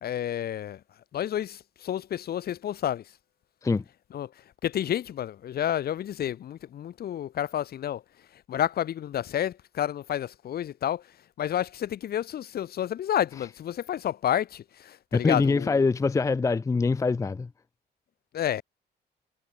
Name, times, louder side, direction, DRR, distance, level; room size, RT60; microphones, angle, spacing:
voice 1, 0.0-0.8 1.1-3.0 4.1-4.3 4.6-8.0 8.5-11.0 11.4-15.8 18.3-18.6, left 10 dB, 60° left, 1.5 m, -30 dB
voice 2, 15.1-17.5, left 4 dB, 15° left, 0.5 m, -24 dB
cardioid pair, 130°, 18 cm